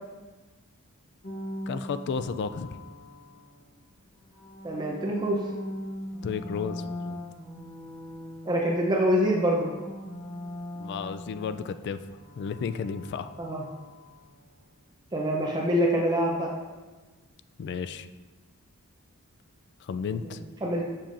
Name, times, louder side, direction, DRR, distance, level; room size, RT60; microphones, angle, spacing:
sound 1, 1.2-3.7 4.3-9.2 9.4-14.4, left 1 dB, 35° left, 0.9 m, -41 dB
voice 1, 1.7-2.8 6.2-7.2 10.8-12.0 12.4-13.3 17.6-18.1 19.8-20.4, left 6 dB, 50° left, 11 dB, 0.3 m, -33 dB
voice 2, 4.6-5.4 8.5-9.7 13.4-13.6 15.1-16.5 20.6-20.9, equal, 20° right, -2 dB, 0.6 m, -25 dB
7.4 x 6.9 x 2.6 m, 1.3 s
head